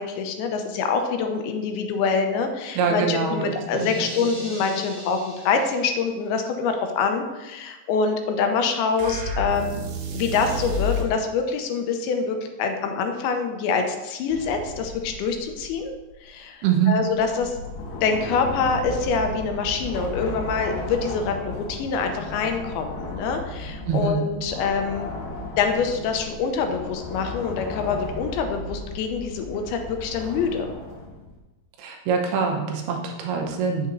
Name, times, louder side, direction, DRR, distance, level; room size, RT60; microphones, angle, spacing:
voice 1, 0.0-9.8 10.1-15.9 16.2-17.6 18.0-25.1 25.6-30.7, left 5 dB, 85° left, 5 dB, 2.5 m, -25 dB
voice 2, 2.8-3.5 3.8-4.3 16.6-17.0 23.9-24.2 31.8-33.9, right 6 dB, 90° right, 2 dB, 2.8 m, -24 dB
sound 1, 3.7-6.2, equal, 50° left, 3.2 m, -41 dB
sound 2, 9.0-11.1, left 1 dB, 70° right, 2.2 m, -29 dB
sound 3, 14.3-16.2 17.1-31.4, left 2 dB, 65° left, 2.3 m, -35 dB
8.1 x 6.7 x 2.6 m, 1.1 s
omnidirectional pair, 4.5 m